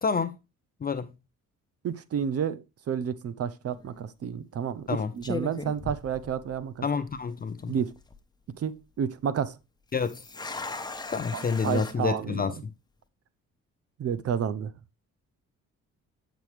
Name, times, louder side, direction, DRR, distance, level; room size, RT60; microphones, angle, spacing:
voice 1, 0.0-0.4 0.8-1.1 4.9-5.1 6.8-7.7 9.9-10.2 11.1-12.7, left 5 dB, 30° left, 0.5 m, -28 dB
voice 2, 1.8-6.8 7.7-7.9 8.6-9.6 11.3-12.5 14.0-14.7, right 8 dB, 50° right, 0.7 m, -31 dB
sound 1, 3.7-4.0 4.7-4.9 5.2-6.8 7.1-7.2 7.8-8.2 9.9-11.9, left 3 dB, 15° left, 0.9 m, -38 dB
8.2 x 6.1 x 3.2 m
cardioid pair, 90°, 30 cm